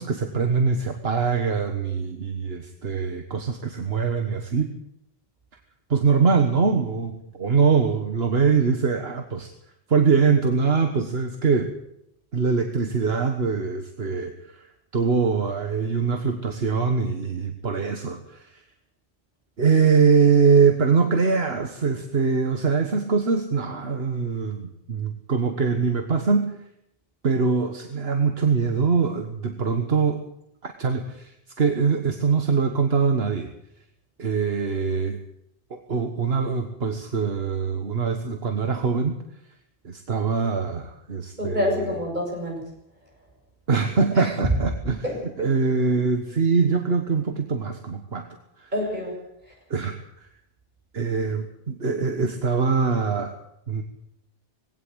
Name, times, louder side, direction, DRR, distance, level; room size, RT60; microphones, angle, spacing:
voice 1, 0.0-4.7 5.9-9.5 9.9-11.7 12.3-18.6 19.6-26.6 27.2-30.2 30.6-33.5 34.2-35.2 35.7-39.2 39.8-41.9 43.7-45.0 45.4-48.3 48.6-48.7 49.7-50.3 50.9-53.3 53.7-53.8, right 5 dB, 75° right, 5 dB, 1.7 m, -23 dB
voice 2, 41.4-42.6 44.1-44.3 45.0-45.1 48.7-49.2, left 1 dB, 50° right, 0 dB, 7.6 m, -27 dB
20.5 x 17.0 x 8.0 m, 0.78 s
omnidirectional pair, 1.0 m